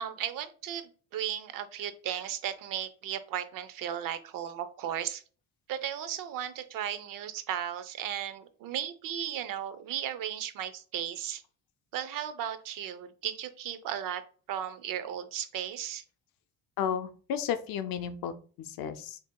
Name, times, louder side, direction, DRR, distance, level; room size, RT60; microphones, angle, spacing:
voice 1, 0.0-5.2 5.7-11.4 11.9-14.2 14.5-16.0, right 10 dB, 70° right, 12 dB, 0.6 m, -35 dB
voice 2, 16.8-18.3 18.6-19.2, left 8 dB, 70° left, 10 dB, 0.5 m, -33 dB
6.2 x 2.7 x 2.2 m, 0.39 s
cardioid pair, 155°, 35 cm